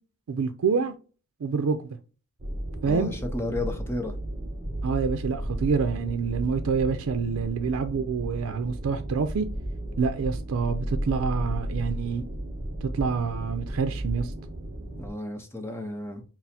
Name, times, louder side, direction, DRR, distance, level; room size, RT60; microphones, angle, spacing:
voice 1, 0.3-0.9 1.4-2.0 2.8-3.1 4.8-9.5 10.0-12.2 12.8-14.3, right 5 dB, 85° right, 0.4 m, -27 dB
sound 1, 2.4-15.1, right 1 dB, 40° right, 0.8 m, -34 dB
voice 2, 2.8-4.1 15.0-16.2, left 2 dB, 10° left, 0.7 m, -32 dB
6.0 x 2.0 x 2.7 m
head